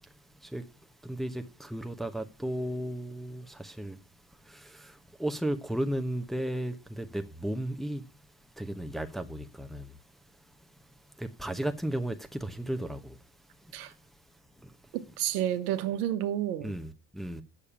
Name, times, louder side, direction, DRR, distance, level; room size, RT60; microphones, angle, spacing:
voice 1, 0.0-4.0 4.3-8.0 8.6-10.0 10.3-13.2 13.6-13.8 14.6-14.8 16.6-17.4, right 1 dB, ahead, 1.1 m, -35 dB
voice 2, 14.9-16.7, right 12 dB, 70° right, 1.3 m, -30 dB
8.4 x 7.1 x 7.1 m
figure-of-eight pair, 60°, 48 cm